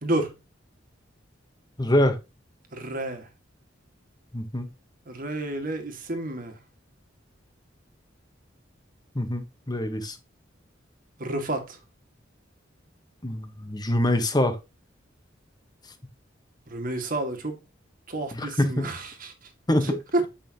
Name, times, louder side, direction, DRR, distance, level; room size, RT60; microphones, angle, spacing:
voice 1, 0.0-0.3 2.7-3.3 5.1-6.6 11.2-11.8 16.7-17.6 18.1-19.5 19.8-20.2, right 2 dB, 50° right, 1.8 m, -30 dB
voice 2, 1.8-2.2 4.3-4.7 9.1-10.2 13.2-14.6 18.3-18.9 19.7-19.9, left 1 dB, 20° left, 1.2 m, -24 dB
8.5 x 5.5 x 2.9 m
head